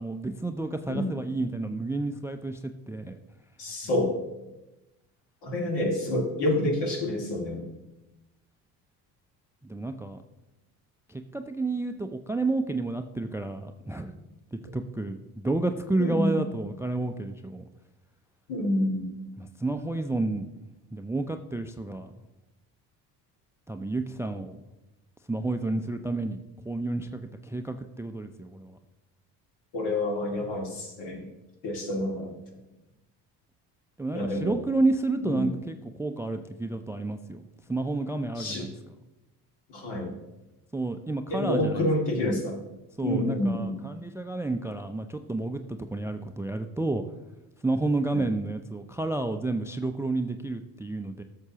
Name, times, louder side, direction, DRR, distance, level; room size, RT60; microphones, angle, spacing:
voice 1, 0.0-3.2 9.6-10.2 11.1-14.2 14.5-17.7 19.4-20.5 20.9-22.1 23.7-24.6 25.3-28.8 34.0-37.4 37.7-38.7 40.7-41.9 42.2-42.4 43.0-47.0 47.6-51.2, right 2 dB, 5° right, 8 dB, 0.4 m, -30 dB
voice 2, 3.6-4.1 5.4-7.7 16.0-16.4 18.5-19.1 29.7-31.3 31.6-32.3 34.1-34.6 35.2-35.5 38.4-38.6 39.7-40.1 41.3-42.6 43.0-43.7 48.1-48.2, left 1 dB, 60° left, 1 dB, 2.4 m, -28 dB
13.5 x 6.8 x 2.9 m, 0.99 s
hypercardioid pair, 60°, 46 cm